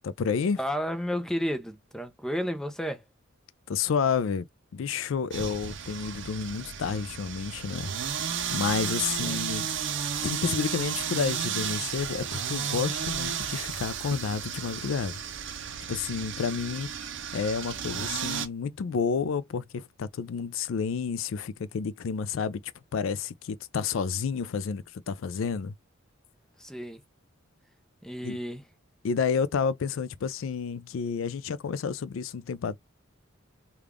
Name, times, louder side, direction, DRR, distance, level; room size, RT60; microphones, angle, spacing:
voice 1, 0.0-0.6 3.7-4.5 4.7-7.9 8.5-9.7 10.2-15.2 15.9-16.9 17.3-22.6 22.9-25.7 28.2-28.4 29.0-32.8, left 6 dB, 70° left, 0.4 m, -30 dB
voice 2, 0.6-3.0 9.2-9.4 26.6-27.0 28.0-28.7, equal, 5° left, 0.6 m, -32 dB
sound 1, 5.3-18.5, right 7 dB, 60° right, 0.6 m, -33 dB
3.3 x 2.3 x 3.5 m
head